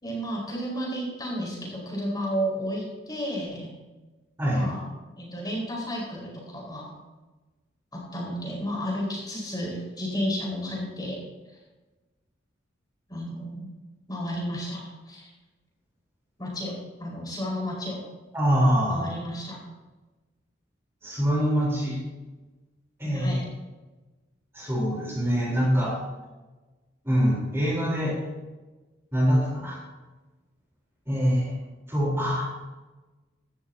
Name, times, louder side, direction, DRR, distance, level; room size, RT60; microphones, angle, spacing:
voice 1, 0.0-3.7 4.5-4.8 5.2-6.9 7.9-11.2 13.1-13.7 14.1-14.8 15.1-15.2 16.4-18.0 18.9-19.6 23.0-23.4, equal, 20° left, -3 dB, 5.1 m, -32 dB
voice 2, 18.3-19.0 21.0-22.0 23.0-23.4 24.5-25.9 27.0-28.1 29.1-29.8 31.1-31.5 31.9-32.5, equal, 15° right, -4 dB, 4.1 m, -24 dB
16.5 x 13.0 x 2.9 m, 1.2 s
head